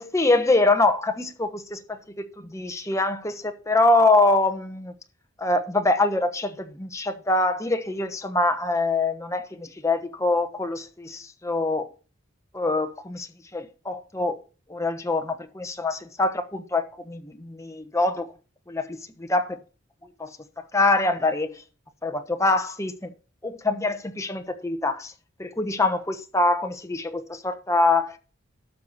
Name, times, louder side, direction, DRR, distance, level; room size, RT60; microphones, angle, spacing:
voice 1, 0.0-4.9 5.4-11.9 12.5-14.4 14.7-18.3 18.7-19.6 20.2-21.6 22.0-23.1 23.4-25.1 25.4-28.2, left 2 dB, 15° left, 1.1 m, -24 dB
12.5 x 6.8 x 4.1 m
head